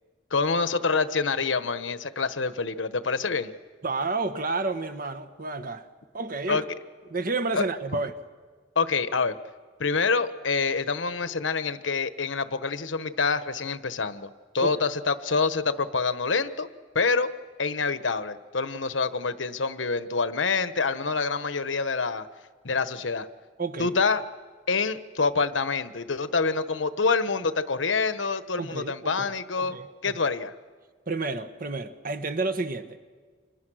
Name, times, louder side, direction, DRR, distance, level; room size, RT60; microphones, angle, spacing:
voice 1, 0.3-3.5 6.5-6.6 7.5-7.6 8.7-9.3 9.8-16.7 16.9-17.3 17.6-22.3 22.6-23.3 23.8-24.2 24.7-30.5, left 4 dB, 85° left, 1.2 m, -26 dB
voice 2, 3.8-5.9 6.1-6.6 7.1-8.1 14.6-14.8 23.6-23.9 28.6-29.3 29.6-30.1 31.1-33.0, right 3 dB, 50° right, 1.4 m, -30 dB
29.5 x 26.0 x 6.4 m
head